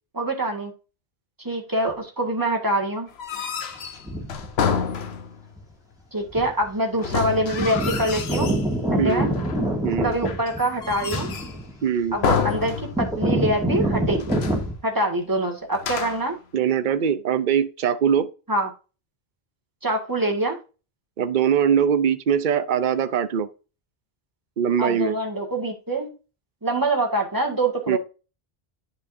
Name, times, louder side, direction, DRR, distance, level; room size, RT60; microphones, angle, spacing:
voice 1, 0.1-0.7 1.4-3.1 6.1-8.5 8.9-9.3 10.0-11.3 12.1-14.4 14.8-16.4 18.5-18.7 19.8-20.6 24.8-26.1 26.6-28.0, right 1 dB, 20° right, 1.9 m, -25 dB
sound 1, 3.1-5.5 7.0-8.7 9.1-9.7 10.2-11.6 12.2-13.3 13.6-13.7 14.1-14.7 15.7-16.4, left 6 dB, 85° left, 1.1 m, -29 dB
sound 2, 4.0-4.5 5.6-5.7 6.3-6.6 6.9-7.0 7.3-14.7, right 1 dB, 5° right, 2.1 m, -26 dB
voice 2, 9.0-9.3 9.8-10.2 11.8-12.2 16.5-18.3 21.2-23.5 24.6-25.2 27.9-28.0, right 8 dB, 55° right, 0.8 m, -22 dB
10.5 x 5.2 x 2.7 m
omnidirectional pair, 1.0 m